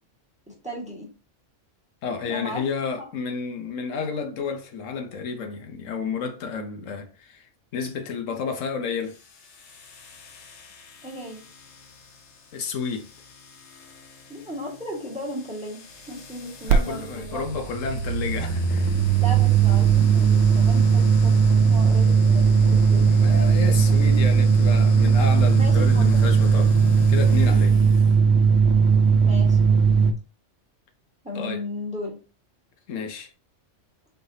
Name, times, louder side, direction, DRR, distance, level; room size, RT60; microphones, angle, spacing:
voice 1, 0.5-1.1 2.3-3.1 11.0-11.4 14.3-15.8 16.1-17.4 19.2-24.0 25.5-26.2 27.5-27.8 28.2-28.3 29.2-29.6 31.2-32.2, equal, 5° right, 1.3 m, -36 dB
voice 2, 2.0-9.2 12.5-13.1 16.6-18.9 23.1-26.8 27.1-27.7 31.3-31.6 32.9-33.3, left 5 dB, 90° left, 1.1 m, -31 dB
sound 1, 9.0-28.1, left 2 dB, 65° left, 1.1 m, -40 dB
sound 2, 16.7-16.8 17.1-30.1, right 5 dB, 80° right, 0.9 m, -18 dB
4.6 x 3.3 x 2.7 m
omnidirectional pair, 1.3 m